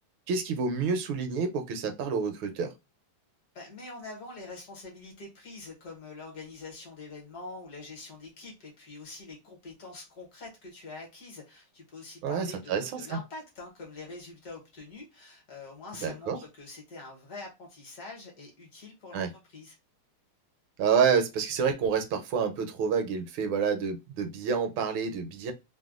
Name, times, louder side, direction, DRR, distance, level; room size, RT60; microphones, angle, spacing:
voice 1, 0.3-2.7 12.2-13.2 16.0-16.4 19.1-19.3 20.8-25.5, right 6 dB, 80° right, 1.4 m, -28 dB
voice 2, 3.5-19.8, left 3 dB, 55° left, 1.3 m, -45 dB
3.4 x 2.2 x 2.3 m
omnidirectional pair, 2.2 m